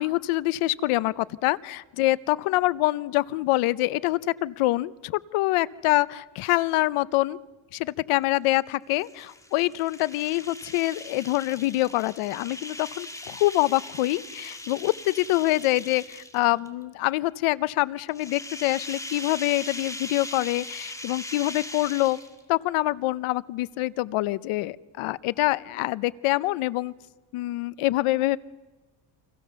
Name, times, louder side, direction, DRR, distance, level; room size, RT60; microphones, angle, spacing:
voice 1, 0.0-7.4 7.7-22.2 22.5-26.9 27.3-28.4, left 18 dB, 85° left, 19 dB, 0.8 m, -25 dB
sound 1, 8.9-16.7 18.1-22.5, left 1 dB, 5° left, 2.1 m, -40 dB
29.5 x 25.0 x 6.9 m, 1.2 s
cardioid pair, 130°, 49 cm